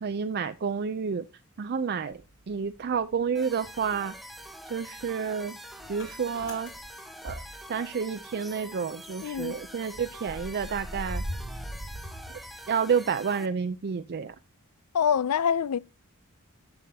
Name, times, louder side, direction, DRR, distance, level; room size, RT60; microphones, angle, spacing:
voice 1, 0.0-1.2 1.6-2.2 2.5-4.1 4.7-5.6 5.9-6.7 7.2-7.4 7.7-11.2 12.7-14.3, right 6 dB, 45° right, 0.4 m, -30 dB
Motor vehicle (road) / Engine starting, 2.2-3.3 3.6-8.3 8.6-8.7 8.9-13.0, equal, 65° left, 4.3 m, -41 dB
sound 1, 3.3-13.5, equal, ahead, 0.9 m, -45 dB
voice 2, 9.2-9.6 14.9-15.8, left 7 dB, 85° left, 0.4 m, -25 dB
11.5 x 7.0 x 2.8 m
head